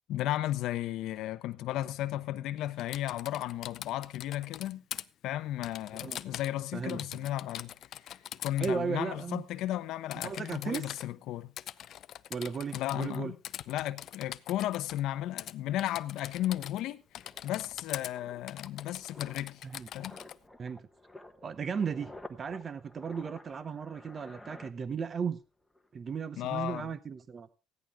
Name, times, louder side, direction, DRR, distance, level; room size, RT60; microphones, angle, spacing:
voice 1, 0.1-4.8 5.2-7.7 8.4-11.5 12.7-13.4 13.7-17.0 17.4-19.6 19.9-20.2 26.4-26.9, left 13 dB, 75° left, 0.8 m, -34 dB
Typing, 2.8-5.0 5.6-6.6 6.9-8.7 10.1-11.1 11.6-13.2 13.4-15.0 15.4-15.5 15.8-16.9 17.1-18.1 18.5-20.4, left 11 dB, 55° left, 0.6 m, -43 dB
voice 2, 5.9-6.4 6.7-7.2 8.6-9.4 10.2-11.0 12.3-13.3 19.6-19.9 20.6-20.9 21.4-25.4 25.9-27.5, right 6 dB, 30° right, 0.7 m, -36 dB
sound 1, 16.3-25.4 25.6-25.9, left 1 dB, ahead, 1.1 m, -52 dB
15.5 x 10.5 x 3.6 m
cardioid pair, 150°, 0 cm